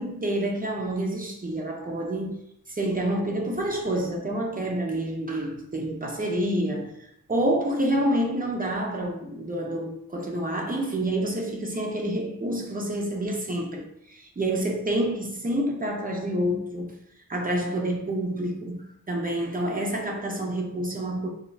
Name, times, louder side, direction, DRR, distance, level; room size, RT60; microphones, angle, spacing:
voice 1, 0.0-2.4 2.7-16.9 17.3-21.3, right 1 dB, 25° right, 0.4 m, -28 dB
3.1 x 2.4 x 2.3 m
wide cardioid pair, 135°, 35 cm